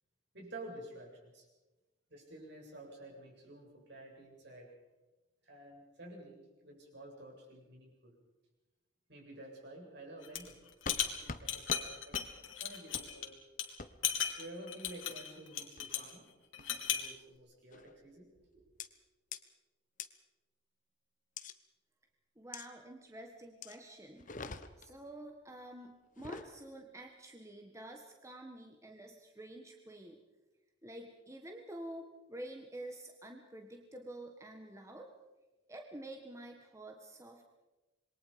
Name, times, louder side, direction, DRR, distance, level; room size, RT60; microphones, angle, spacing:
voice 1, 0.3-1.5 2.1-4.7 5.4-6.4 6.6-8.1 9.1-10.6 11.0-12.3 12.6-13.4 14.4-16.3 16.6-18.6, right 1 dB, 60° right, -1 dB, 7.4 m, -51 dB
sound 1, 10.2-10.5 10.8-13.3 13.6-13.7 14.0-16.1 16.5-17.1, left 9 dB, 90° left, 2.9 m, -36 dB
sound 2, 10.9-11.0 11.3-11.4 11.7-11.8 12.1-12.3 12.9-13.1 13.8-13.9 14.9-15.2 15.8-16.1 16.6-16.9 17.7-18.0 18.8-18.9 19.3-19.4 20.0-20.1 21.4-21.5 22.5-22.7 23.6-23.8 24.2-24.9 26.1-26.5, left 4 dB, 40° left, 1.1 m, -44 dB
voice 2, 22.3-30.2 30.8-35.1 35.7-37.5, right 1 dB, 15° right, 3 dB, 1.5 m, -49 dB
27.0 x 22.5 x 5.2 m, 1.1 s
head